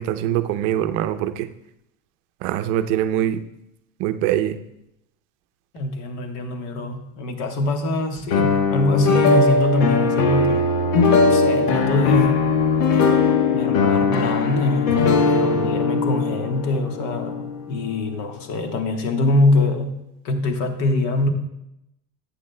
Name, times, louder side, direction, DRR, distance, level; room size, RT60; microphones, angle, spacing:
voice 1, 0.0-1.5 2.4-3.4 4.0-4.6, right 11 dB, 60° right, 10 dB, 0.6 m, -23 dB
voice 2, 5.7-10.7 11.2-12.4 13.5-20.0 20.2-21.3, left 2 dB, 50° left, 5 dB, 1.3 m, -23 dB
sound 1, 8.3-18.2, left 4 dB, 70° left, 1.1 m, -19 dB
11.5 x 8.5 x 2.2 m, 0.83 s
supercardioid pair, 135°, 40 cm